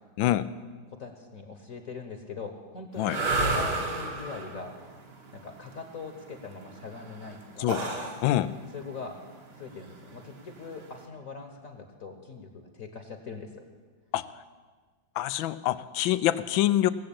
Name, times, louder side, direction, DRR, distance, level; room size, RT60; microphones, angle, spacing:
voice 1, 0.2-0.5 3.0-3.2 7.6-7.8 8.2-8.5 14.1-14.2 15.2-16.9, left 14 dB, 90° left, 15 dB, 1.4 m, -25 dB
voice 2, 0.9-4.8 5.3-7.7 8.7-9.2 9.5-13.7, left 4 dB, 50° left, 5 dB, 1.4 m, -41 dB
sound 1, 3.0-11.0, right 3 dB, 60° right, 2.1 m, -33 dB
18.0 x 7.6 x 8.6 m, 1.4 s
omnidirectional pair, 2.1 m